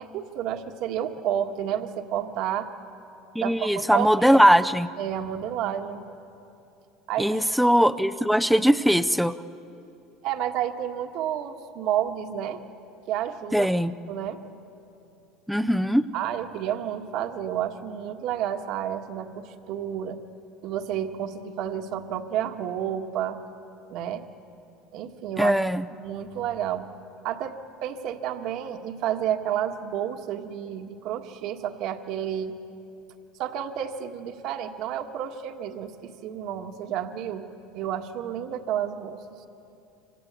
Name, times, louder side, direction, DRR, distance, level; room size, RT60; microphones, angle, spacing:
voice 1, 0.0-2.7 3.4-4.4 5.0-6.0 7.1-7.7 10.2-12.6 13.1-13.7 14.1-14.4 16.1-20.2 20.6-23.4 23.9-24.2 24.9-25.6 26.0-26.9 27.2-32.6 33.4-37.5 37.7-39.4, right 10 dB, 60° right, 5 dB, 1.6 m, -30 dB
voice 2, 3.3-4.9 7.2-9.4 13.5-13.9 15.5-16.0 25.4-25.9, equal, ahead, 9 dB, 0.6 m, -20 dB
27.0 x 25.5 x 8.3 m, 2.7 s
supercardioid pair, 135°, 0 cm